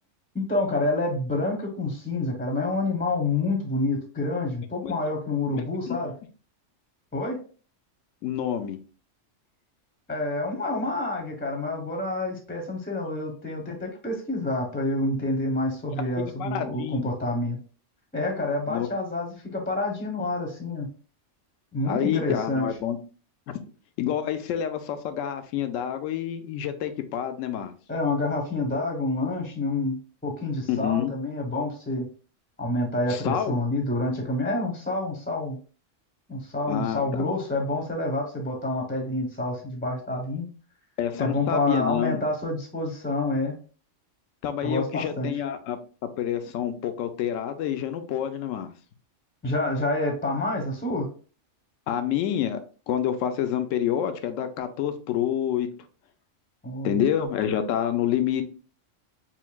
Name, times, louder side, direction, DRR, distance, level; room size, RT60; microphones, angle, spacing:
voice 1, 0.3-6.1 7.1-7.4 10.1-17.6 18.1-20.9 21.7-22.6 27.9-30.0 30.2-32.1 32.6-35.6 36.3-40.5 41.2-43.5 44.6-45.3 49.4-51.1 56.6-57.0, left 2 dB, 10° left, 1 dB, 0.5 m, -28 dB
voice 2, 5.5-6.0 8.2-8.8 16.4-17.1 18.7-18.9 21.9-23.0 23.5-23.6 24.0-27.7 30.7-31.1 33.1-33.6 36.7-37.3 41.0-42.3 44.4-45.8 46.2-48.7 51.9-52.6 52.9-55.7 56.8-58.4, left 10 dB, 80° left, 9 dB, 0.9 m, -28 dB
5.6 x 2.6 x 2.2 m, 0.38 s
omnidirectional pair, 1.3 m